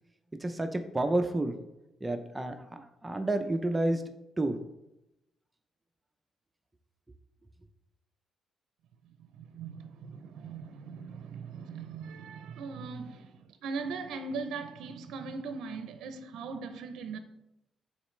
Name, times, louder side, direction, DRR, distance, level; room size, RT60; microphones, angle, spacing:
voice 1, 0.4-1.6 2.0-4.0 4.4-4.6, right 2 dB, 15° right, 0.5 m, -30 dB
voice 2, 9.3-17.2, right 4 dB, 80° right, 0.5 m, -40 dB
9.2 x 4.0 x 3.2 m
cardioid pair, 90°, 0 cm